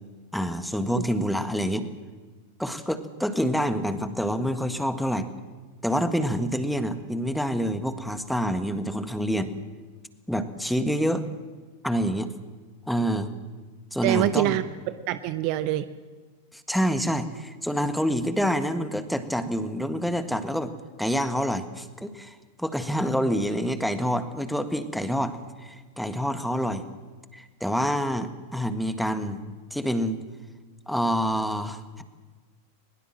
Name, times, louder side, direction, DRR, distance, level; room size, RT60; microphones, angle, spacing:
voice 1, 0.3-1.9 2.6-5.3 5.8-9.5 10.3-11.3 11.8-12.3 12.9-13.3 13.9-14.5 16.7-20.7 21.0-26.8 27.3-29.4 29.7-30.2 30.9-32.0, equal, ahead, 9 dB, 1.6 m, -27 dB
voice 2, 14.0-15.9, right 14 dB, 45° right, 13 dB, 0.9 m, -25 dB
21.5 x 21.0 x 7.6 m, 1.4 s
figure-of-eight pair, 90°, 0 cm